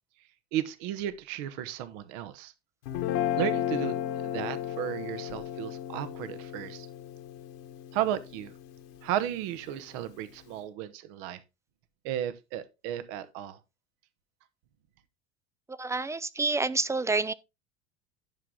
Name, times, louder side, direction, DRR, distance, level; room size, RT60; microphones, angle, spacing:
voice 1, 0.5-2.5 3.4-4.0 4.2-6.9 7.9-8.5 9.0-11.4 12.0-13.6, right 11 dB, 55° right, 1.1 m, -34 dB
Guitar, 2.9-9.2, left 11 dB, 60° left, 1.7 m, -34 dB
voice 2, 15.7-17.3, right 3 dB, 10° right, 0.5 m, -28 dB
11.0 x 6.1 x 3.6 m
figure-of-eight pair, 75°, 33 cm